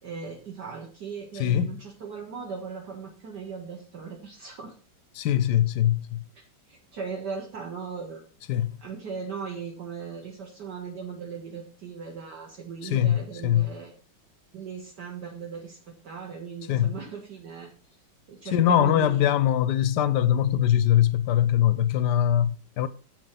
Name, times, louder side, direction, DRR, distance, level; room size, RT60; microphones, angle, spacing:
voice 1, 0.0-4.7 6.7-8.2 8.8-14.0 14.5-17.7 18.3-19.3, right 6 dB, 55° right, 2.1 m, -38 dB
voice 2, 1.4-1.7 5.2-6.2 8.5-8.7 12.8-13.7 16.7-16.9 18.5-22.9, left 11 dB, 65° left, 1.1 m, -22 dB
7.9 x 7.5 x 5.7 m
omnidirectional pair, 2.2 m